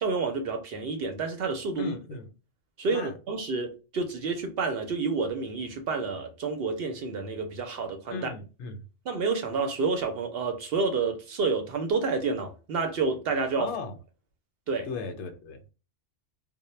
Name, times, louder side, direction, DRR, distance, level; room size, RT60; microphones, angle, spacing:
voice 1, 0.0-2.0 2.8-8.3 9.1-13.7 14.7-14.9, right 4 dB, 65° right, 0.7 m, -29 dB
voice 2, 1.8-2.3 2.9-3.1 8.1-8.9 13.6-14.0 14.8-15.6, left 4 dB, 75° left, 0.8 m, -36 dB
2.1 x 2.1 x 3.0 m
omnidirectional pair, 1.2 m